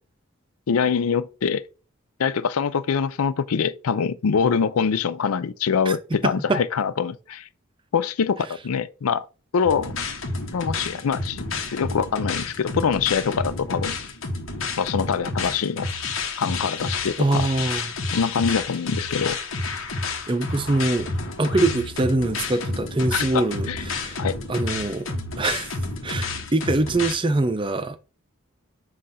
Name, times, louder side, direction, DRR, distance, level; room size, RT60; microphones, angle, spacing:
voice 1, 0.7-1.6 2.2-7.5 7.9-9.3 9.5-9.9 10.5-11.4 11.7-13.9 14.8-15.9 16.4-17.5 17.7-17.8 18.1-19.4 23.1-23.8 24.2-24.4, left 6 dB, 85° left, 0.5 m, -24 dB
voice 2, 6.2-6.6 17.2-17.9 20.3-21.1 21.4-24.2 24.5-25.1 25.4-25.7 26.0-28.0, right 2 dB, 25° right, 0.5 m, -23 dB
sound 1, 9.6-27.1, left 3 dB, 70° left, 1.2 m, -30 dB
7.5 x 2.5 x 5.5 m
head